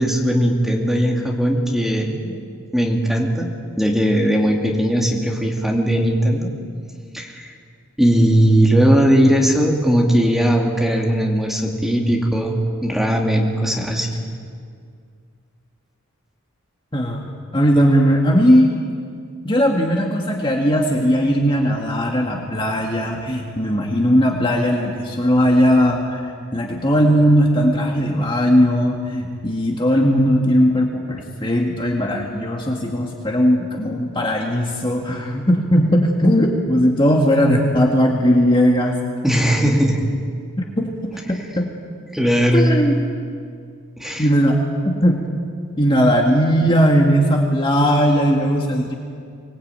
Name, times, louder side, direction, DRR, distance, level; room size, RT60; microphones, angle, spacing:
voice 1, 0.0-2.4 2.7-6.5 7.1-7.5 8.0-14.2 39.2-40.0 42.1-42.7 44.0-44.3, equal, ahead, -1 dB, 2.5 m, -18 dB
voice 2, 16.9-17.3 17.5-18.7 19.4-26.2 26.5-39.0 39.6-39.8 40.8-41.7 42.5-42.9 44.2-44.6 45.0-45.2 45.8-48.9, equal, 20° left, 0 dB, 1.9 m, -18 dB
25.0 x 19.5 x 9.0 m, 2.2 s
head